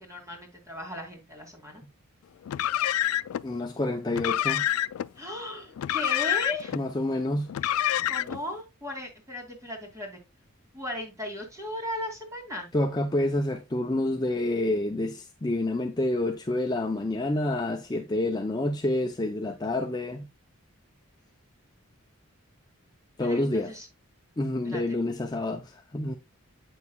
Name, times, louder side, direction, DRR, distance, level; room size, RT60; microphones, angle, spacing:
voice 1, 0.0-1.8 5.2-6.8 8.1-10.2 10.7-12.7 23.2-23.9 24.6-25.0, left 1 dB, 15° right, 2.4 m, -37 dB
Car, 2.4-3.4 4.1-5.1 5.8-6.8 7.5-8.4, left 12 dB, 80° left, 0.3 m, -27 dB
voice 2, 3.4-4.6 6.7-7.5 12.7-20.3 23.2-23.7 24.4-26.2, left 1 dB, 20° left, 0.5 m, -28 dB
8.3 x 6.4 x 2.3 m
head